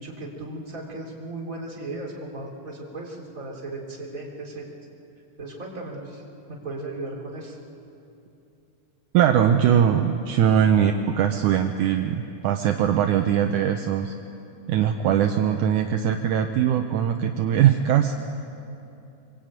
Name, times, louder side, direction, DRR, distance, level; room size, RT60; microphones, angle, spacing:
voice 1, 0.0-4.7 5.4-7.6, right 2 dB, 25° right, -1 dB, 4.0 m, -36 dB
voice 2, 9.1-14.2 14.7-18.1, right 9 dB, 75° right, 5 dB, 2.2 m, -21 dB
24.0 x 23.5 x 9.1 m, 2.7 s
omnidirectional pair, 3.8 m